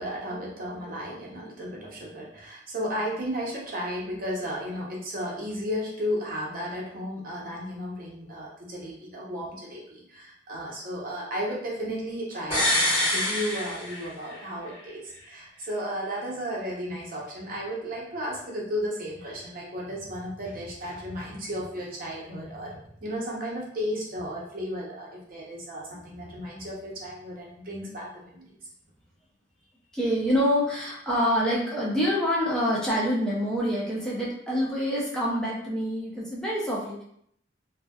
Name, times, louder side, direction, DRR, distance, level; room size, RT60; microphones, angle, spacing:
voice 1, 0.0-28.5, equal, 55° right, -4 dB, 0.7 m, -34 dB
sound 1, 12.5-14.4 14.7-14.8, left 1 dB, 35° left, 1.4 m, -26 dB
voice 2, 29.9-37.0, equal, 5° left, -6 dB, 0.4 m, -26 dB
2.6 x 2.1 x 2.2 m, 0.69 s
head